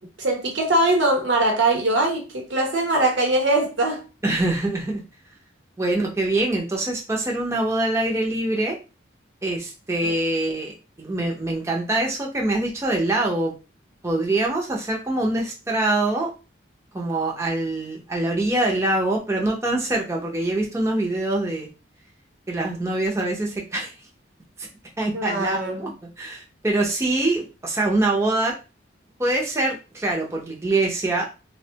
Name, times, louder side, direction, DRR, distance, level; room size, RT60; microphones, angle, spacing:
voice 1, 0.2-4.1 10.0-10.1 25.1-25.9, right 2 dB, 70° right, 0.9 m, -22 dB
voice 2, 4.2-5.0 5.8-8.8 9.4-13.5 14.0-16.3 16.9-21.7 22.5-23.9 24.6-24.7 25.0-25.9 26.2-28.5 29.2-31.3, right 2 dB, 15° right, 0.5 m, -24 dB
3.3 x 2.1 x 2.7 m
head